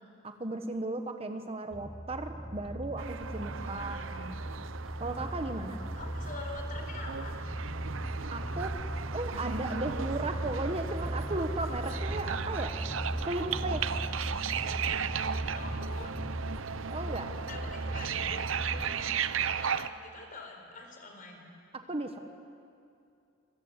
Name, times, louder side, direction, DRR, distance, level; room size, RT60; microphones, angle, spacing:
voice 1, 0.2-4.0 5.0-5.8 8.3-8.7 9.1-12.7 13.2-13.9 16.9-17.3 21.9-22.2, right 2 dB, 30° right, 7 dB, 1.3 m, -35 dB
sound 1, 1.7-19.0, equal, ahead, 1.0 m, -38 dB
sound 2, 3.0-19.9, right 7 dB, 90° right, 0.8 m, -36 dB
voice 2, 3.6-4.3 5.9-7.5 14.3-14.6 15.5-16.2 17.3-19.1 19.4-21.5, left 2 dB, 45° left, 3 dB, 4.7 m, -46 dB
26.0 x 24.0 x 8.2 m, 2.5 s
head